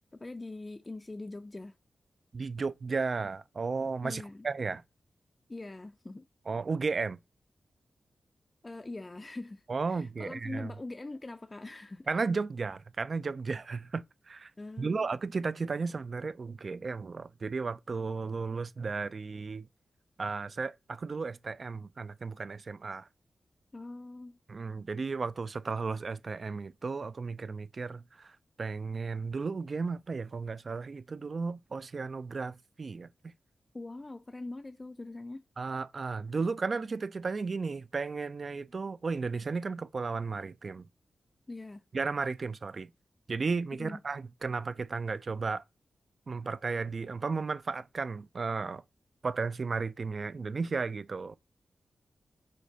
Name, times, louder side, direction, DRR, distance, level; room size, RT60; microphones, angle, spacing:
voice 1, 0.2-1.7 4.0-4.5 5.5-6.3 8.6-12.1 14.6-15.1 23.7-24.4 33.7-35.4 41.5-41.8 43.8-44.0, left 2 dB, 30° left, 0.3 m, -42 dB
voice 2, 2.3-4.8 6.5-7.2 9.7-10.7 12.1-14.5 14.8-19.7 20.2-23.1 24.5-33.1 35.6-40.9 41.9-42.9 43.3-45.6 46.3-48.8 49.2-51.4, right 4 dB, 55° right, 0.3 m, -34 dB
5.1 x 3.6 x 2.7 m
cardioid pair, 70°, 0 cm